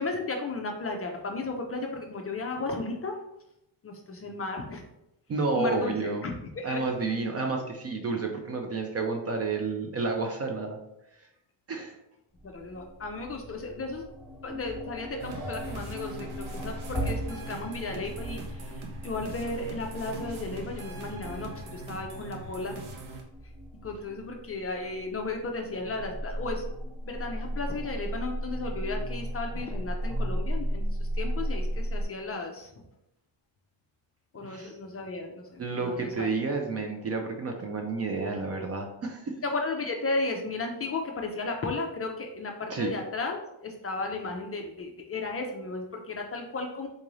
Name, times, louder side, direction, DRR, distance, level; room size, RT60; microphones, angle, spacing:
voice 1, 0.0-3.1 3.8-4.8 5.5-5.9 6.2-6.8 12.4-14.0 14.4-22.7 23.8-26.6 27.1-32.7 34.3-36.3 39.4-46.9, left 3 dB, 30° left, 2 dB, 0.4 m, -34 dB
voice 2, 5.3-6.2 6.6-10.8 11.7-12.0 34.4-34.7 35.6-39.3 42.7-42.9, right 3 dB, 35° right, 3 dB, 0.4 m, -30 dB
sound 1, 12.3-32.1, equal, ahead, 0.9 m, -36 dB
sound 2, 15.2-23.2, right 3 dB, 70° right, 0.8 m, -42 dB
3.8 x 2.5 x 3.0 m, 0.83 s
cardioid pair, 105°, 50 cm